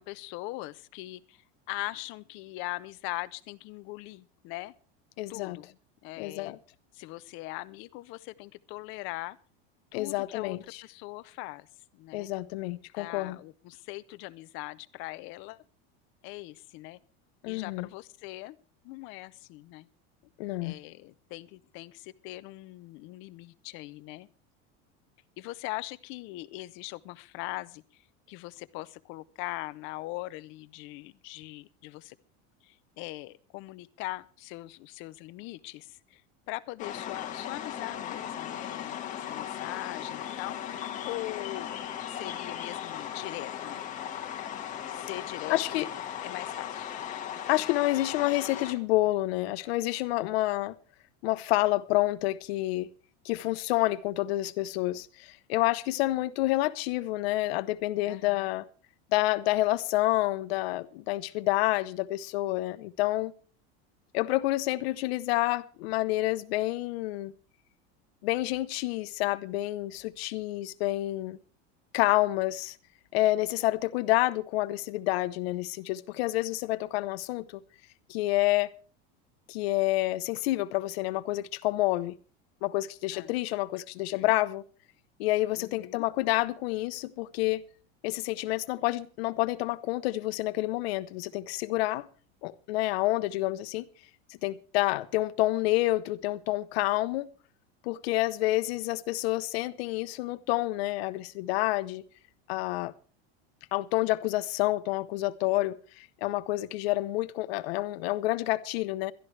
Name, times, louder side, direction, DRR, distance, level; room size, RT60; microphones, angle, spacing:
voice 1, 0.0-4.7 5.3-5.7 6.0-6.6 6.9-9.4 9.9-11.7 11.9-12.3 13.0-15.6 16.2-17.0 17.5-18.6 18.8-19.9 20.6-24.3 25.4-27.8 28.3-32.2 32.6-36.2 36.5-43.8 44.9-45.8 46.2-46.9 58.0-58.5 83.1-83.3 84.1-84.3 85.5-86.0, left 20 dB, 40° left, 0.6 m, -41 dB
voice 2, 5.2-5.6 6.2-6.6 9.9-10.8 12.1-13.4 17.4-17.9 20.4-20.7 45.5-45.9 47.5-50.7 51.2-52.9 53.2-58.6 59.1-63.3 64.1-67.3 68.2-71.4 71.9-72.8 73.1-77.4 78.1-78.7 79.5-82.1 82.6-84.6 85.2-87.6 88.0-92.1 92.4-93.9 94.4-97.3 97.8-102.0 102.5-102.9 103.7-109.1, left 18 dB, 75° left, 0.9 m, -28 dB
sound 1, 36.8-48.7, left 10 dB, 25° left, 1.7 m, -37 dB
22.0 x 12.5 x 3.3 m
cardioid pair, 180°, 31 cm